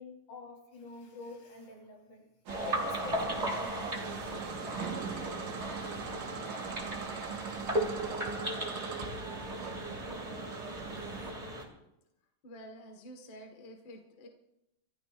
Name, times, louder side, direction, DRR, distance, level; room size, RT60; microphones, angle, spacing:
voice 1, 0.0-2.3 2.6-4.5 5.2-6.2 7.0-7.9, left 3 dB, 65° left, 0 dB, 5.1 m, -49 dB
sound 1, 2.5-11.7, right 1 dB, 15° right, 1.9 m, -37 dB
sound 2, 2.5-11.3, right 6 dB, 70° right, 2.5 m, -41 dB
voice 2, 12.4-14.3, equal, 45° left, 3 dB, 2.1 m, -49 dB
27.0 x 13.5 x 2.5 m, 0.86 s
omnidirectional pair, 3.4 m